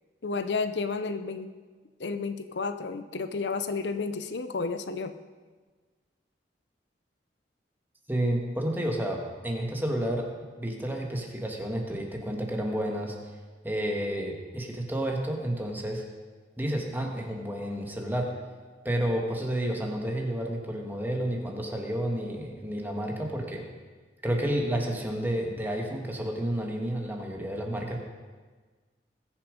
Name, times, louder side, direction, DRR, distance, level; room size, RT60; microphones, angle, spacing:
voice 1, 0.2-1.5 2.0-5.1, left 4 dB, 80° left, 9 dB, 0.7 m, -31 dB
voice 2, 8.1-10.3 10.6-13.2 13.6-16.0 16.6-18.3 18.8-23.6 24.2-28.0, right 1 dB, 10° right, 1 dB, 1.7 m, -30 dB
20.5 x 7.0 x 5.2 m, 1.4 s
head